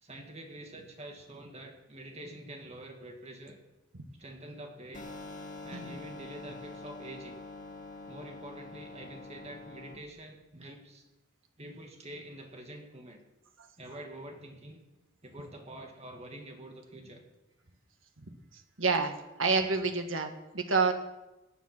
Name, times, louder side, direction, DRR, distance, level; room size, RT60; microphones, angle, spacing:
voice 1, 0.0-3.6 4.2-5.1 5.6-7.4 8.0-11.0 11.6-13.2 13.8-14.8 15.2-17.2, right 1 dB, 30° right, 2 dB, 2.1 m, -46 dB
sound 1, 4.9-9.9, left 3 dB, 40° left, 2.2 m, -45 dB
voice 2, 18.2-19.1 19.4-20.9, right 4 dB, 70° right, 6 dB, 1.7 m, -29 dB
17.5 x 9.5 x 6.1 m, 0.98 s
head